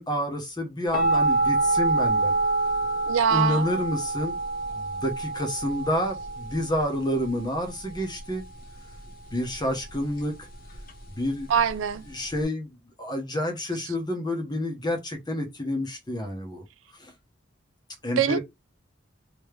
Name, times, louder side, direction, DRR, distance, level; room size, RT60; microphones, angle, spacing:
voice 1, 0.0-2.3 3.3-4.4 4.7-8.4 9.3-10.3 11.2-11.5 12.1-12.7 13.0-16.6 17.0-17.1 18.0-18.4, left 1 dB, 20° left, 1.1 m, -29 dB
sound 1, 0.9-12.4, right 3 dB, 45° left, 0.7 m, -28 dB
voice 2, 3.1-3.7 11.5-12.0 18.2-18.4, right 7 dB, 70° right, 0.4 m, -23 dB
3.2 x 3.1 x 3.3 m
head